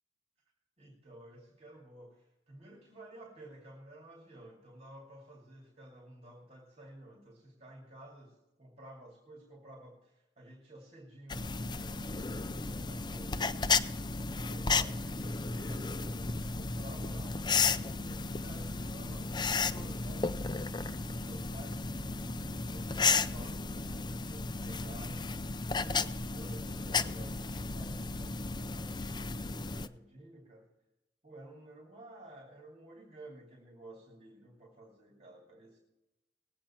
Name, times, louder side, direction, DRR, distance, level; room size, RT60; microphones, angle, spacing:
voice 1, 0.8-13.7 14.3-30.7 31.2-35.8, right 1 dB, 35° right, -1 dB, 2.6 m, -53 dB
sound 1, 11.3-29.9, left 4 dB, 25° left, 0.5 m, -34 dB
20.0 x 8.7 x 4.4 m, 0.95 s
head